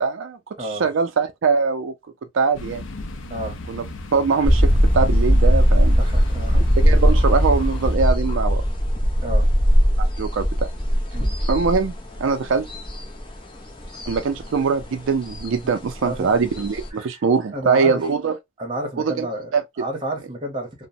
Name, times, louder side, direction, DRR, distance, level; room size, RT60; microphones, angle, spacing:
voice 1, 0.0-1.9 2.3-2.8 3.7-3.8 4.1-6.0 6.5-8.6 10.2-10.7 11.5-11.9 12.2-12.7 14.1-18.4 19.0-19.3 19.5-19.6, right 5 dB, 75° right, 0.4 m, -22 dB
voice 2, 0.6-0.9 3.3-3.6 6.0-6.6 9.2-9.5 11.1-11.4 13.9-14.0 15.6-15.7 16.0-16.3 16.9-17.2 17.5-18.1 18.6-19.5 19.8-20.9, right 1 dB, 25° right, 0.9 m, -31 dB
sound 1, 2.5-8.0, left 1 dB, 75° left, 0.5 m, -34 dB
sound 2, 4.4-16.9, equal, 25° left, 0.6 m, -19 dB
2.9 x 2.0 x 2.6 m
head